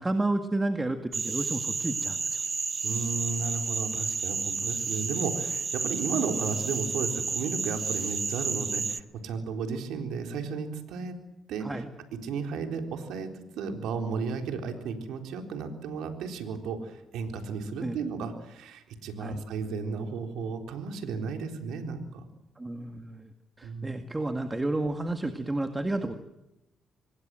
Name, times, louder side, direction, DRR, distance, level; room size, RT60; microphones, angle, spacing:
voice 1, 0.0-2.4 11.6-11.9 17.8-18.0 19.2-19.4 22.6-23.3 23.6-26.1, right 2 dB, 15° right, 6 dB, 1.9 m, -31 dB
sound 1, 1.1-9.0, right 4 dB, 35° right, 1.0 m, -31 dB
voice 2, 2.8-11.2 11.5-11.7 12.2-22.2 23.6-24.0, right 5 dB, 85° right, 5 dB, 3.9 m, -34 dB
26.0 x 21.0 x 7.7 m, 0.93 s
cardioid pair, 90°, 0 cm